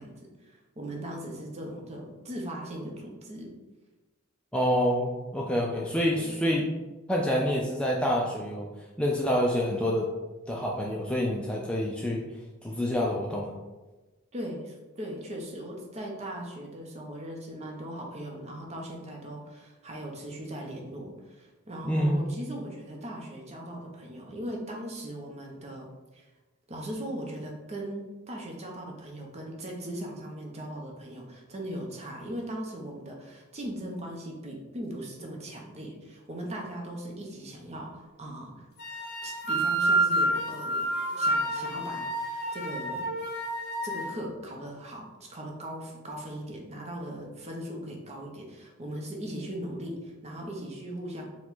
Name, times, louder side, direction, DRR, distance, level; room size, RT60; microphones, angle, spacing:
voice 1, 0.0-3.5 6.2-6.4 14.3-25.9 26.1-26.3 26.7-38.6 39.2-40.9 41.2-43.1 43.8-51.3, right 1 dB, 30° right, 0 dB, 0.8 m, -39 dB
voice 2, 4.5-6.7 7.1-8.7 9.0-10.1 10.5-12.2 12.6-13.6 21.8-22.3, equal, 5° left, -3 dB, 0.3 m, -27 dB
sound 1, 38.8-44.1, right 1 dB, 50° left, 0.8 m, -29 dB
4.6 x 2.3 x 3.9 m, 1.2 s
head